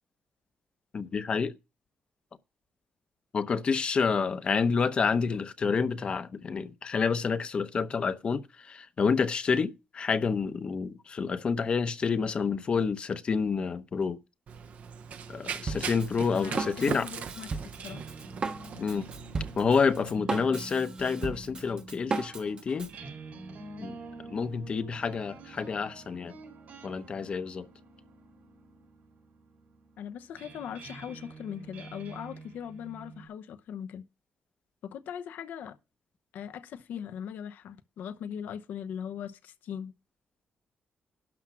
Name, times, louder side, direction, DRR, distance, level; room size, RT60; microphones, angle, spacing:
voice 1, 0.9-1.5 3.3-14.2 15.3-17.1 18.8-19.1 19.6-22.9 23.8-24.0 24.3-26.3 26.8-27.7, left 5 dB, 35° left, 0.8 m, -28 dB
Run, 14.5-20.0, right 7 dB, 55° right, 0.8 m, -40 dB
Drum kit, 15.7-23.0, right 4 dB, 30° right, 1.1 m, -36 dB
voice 2, 16.3-18.0 30.0-34.1 34.8-35.8 36.3-39.9, left 8 dB, 80° left, 0.8 m, -40 dB
sound 1, 17.6-33.3, right 3 dB, 75° right, 3.9 m, -48 dB
12.0 x 5.8 x 6.1 m
wide cardioid pair, 160°, 3 cm